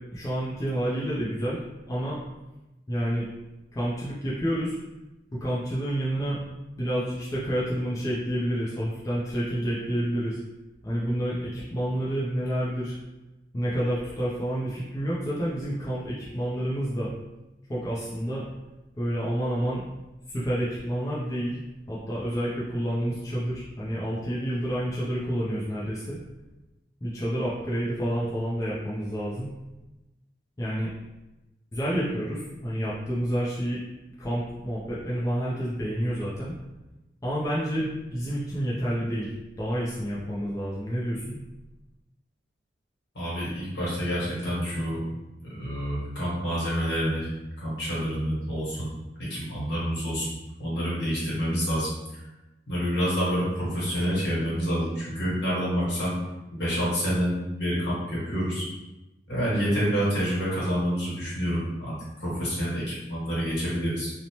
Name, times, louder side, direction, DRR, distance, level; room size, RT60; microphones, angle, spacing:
voice 1, 0.1-1.6 1.9-2.2 2.9-3.3 3.7-4.8 5.3-6.4 6.8-10.4 10.8-12.9 13.5-17.1 17.7-18.4 19.0-19.8 20.3-21.6 21.9-26.2 27.0-29.5 30.6-30.9 31.7-33.8 34.2-36.5 37.2-41.4, equal, 20° left, -7 dB, 0.4 m, -29 dB
voice 2, 43.1-45.0 45.5-47.3 47.6-48.9 49.2-50.3 50.6-51.9 52.7-56.1 56.5-58.7 59.3-64.1, equal, 70° left, -7 dB, 1.2 m, -28 dB
2.7 x 2.0 x 2.9 m, 1.0 s
head